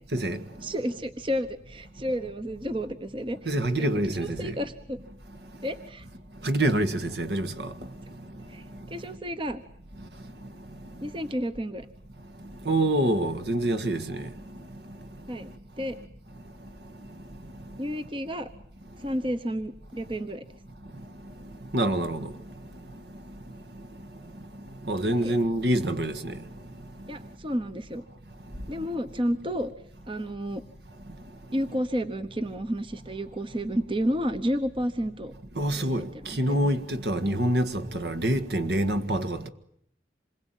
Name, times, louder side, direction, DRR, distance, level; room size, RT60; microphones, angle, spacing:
voice 1, 0.6-3.4 4.2-5.0 5.6-6.1 8.5-9.6 11.0-11.9 15.3-15.5 15.8-16.0 17.8-18.5 19.0-20.4 25.1-25.4 27.1-28.0 28.7-29.7 30.1-30.6 31.5-35.3 35.8-36.1 36.5-36.6, equal, 30° right, 1.0 m, -31 dB
voice 2, 3.5-4.5 6.4-7.7 12.6-14.3 21.7-22.2 24.9-26.3 35.6-39.5, right 1 dB, 65° right, 1.7 m, -26 dB
27.0 x 21.5 x 9.2 m
head